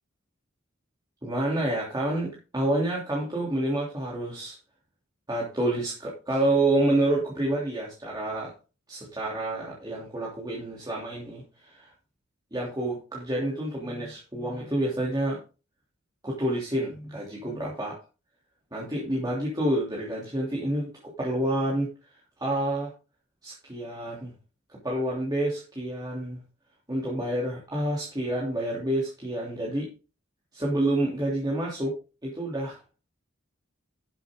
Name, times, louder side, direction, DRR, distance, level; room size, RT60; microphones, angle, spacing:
voice 1, 1.2-4.6 5.3-8.5 8.9-11.9 12.5-15.4 16.2-18.0 18.7-21.9 22.4-22.9 23.4-24.3 24.7-26.4 26.9-29.9 30.5-31.9 32.2-32.8, right 1 dB, 20° right, -5 dB, 3.1 m, -28 dB
11.5 x 7.9 x 3.8 m, 0.31 s
head